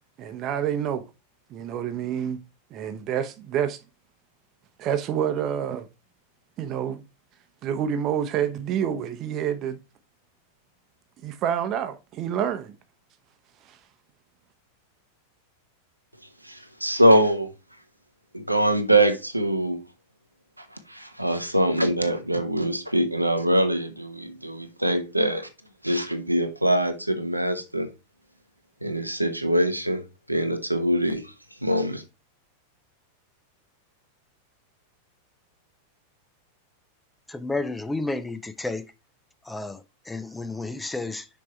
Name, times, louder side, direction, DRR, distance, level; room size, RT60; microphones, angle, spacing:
voice 1, 0.2-1.0 1.5-2.4 2.7-3.8 4.8-5.9 6.6-7.0 7.6-9.8 11.2-12.7 13.7-13.8, right 9 dB, 35° right, 0.9 m, -28 dB
voice 2, 16.4-17.5 18.3-19.8 20.6-25.5 25.8-27.9 28.8-30.0 30.3-31.2 31.6-32.0, right 1 dB, 85° right, 1.0 m, -23 dB
voice 3, 37.3-38.9 39.5-41.3, left 2 dB, 5° left, 0.6 m, -31 dB
6.2 x 4.7 x 4.3 m
figure-of-eight pair, 90°, 0 cm